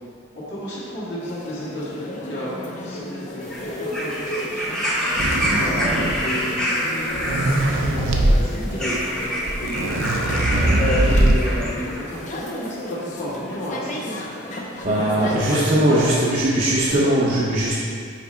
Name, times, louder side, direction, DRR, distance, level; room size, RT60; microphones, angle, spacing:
voice 1, 0.5-4.8 5.6-9.9 10.8-14.2 14.9-15.6 15.9-17.1, equal, 60° left, -9 dB, 1.6 m, -31 dB
sound 1, 1.2-15.9, left 1 dB, 35° left, 0.6 m, -34 dB
sound 2, 3.4-12.1 13.0-13.1, equal, 5° left, 0.7 m, -27 dB
sound 3, 5.2-6.4 7.0-8.4 9.2-9.3 9.5-11.5, right 1 dB, 85° right, 0.7 m, -21 dB
voice 2, 14.8-17.8, right 1 dB, 40° right, -6 dB, 0.6 m, -20 dB
5.9 x 5.2 x 4.3 m, 2.3 s
head